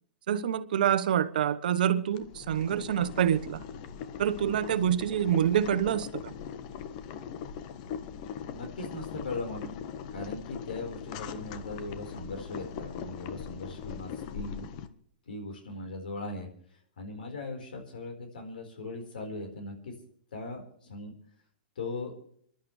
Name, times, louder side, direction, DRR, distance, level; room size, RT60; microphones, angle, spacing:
voice 1, 0.3-3.6 4.2-6.3, right 9 dB, 70° right, 1.1 m, -26 dB
Boiling, 2.1-14.9, left 7 dB, 50° left, 1.3 m, -40 dB
voice 2, 8.5-9.7 10.1-14.7 15.3-16.5 17.0-19.9 20.3-21.1 21.8-22.2, left 2 dB, 75° left, 4.5 m, -39 dB
28.0 x 11.5 x 3.3 m
hypercardioid pair, 115°, 5 cm